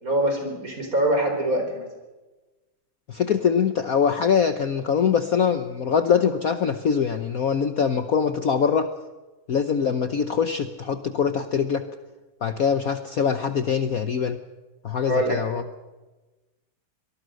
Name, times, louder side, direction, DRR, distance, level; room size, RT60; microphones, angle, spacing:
voice 1, 0.0-1.8 15.0-15.4, right 1 dB, 40° right, 3 dB, 5.1 m, -24 dB
voice 2, 3.1-8.9 9.5-11.9 12.4-14.4 14.8-15.6, left 7 dB, 55° left, 9 dB, 1.2 m, -23 dB
25.0 x 19.0 x 6.4 m, 1.1 s
omnidirectional pair, 2.3 m